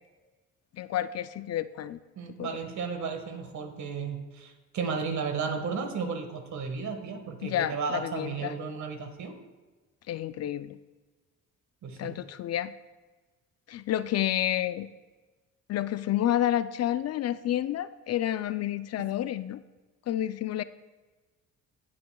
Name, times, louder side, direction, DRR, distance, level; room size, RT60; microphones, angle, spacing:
voice 1, 0.7-2.0 2.4-2.5 7.4-8.5 10.1-10.8 12.0-12.7 13.7-14.9 15.7-19.6 20.1-20.6, left 12 dB, 55° left, 14 dB, 0.4 m, -29 dB
voice 2, 2.1-9.4 11.8-12.2, right 5 dB, 70° right, 5 dB, 1.6 m, -34 dB
18.0 x 7.7 x 2.3 m, 1.3 s
cardioid pair, 90°, 30 cm